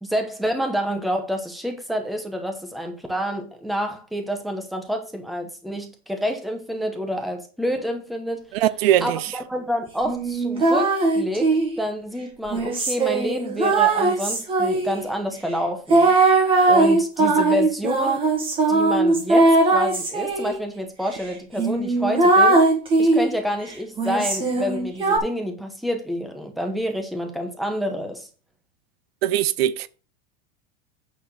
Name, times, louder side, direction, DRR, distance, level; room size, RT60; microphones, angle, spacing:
voice 1, 0.0-8.4 9.0-16.1 16.7-18.2 18.7-22.7 23.0-28.3, equal, ahead, 0.9 m, -28 dB
voice 2, 8.5-9.2 29.2-29.9, right 12 dB, 75° right, 0.7 m, -20 dB
sound 1, 10.0-11.8 12.5-15.0 15.9-20.6 21.1-21.2 21.6-23.3 24.0-25.2, right 3 dB, 15° right, 1.8 m, -19 dB
8.8 x 4.4 x 6.3 m
supercardioid pair, 165°, 31 cm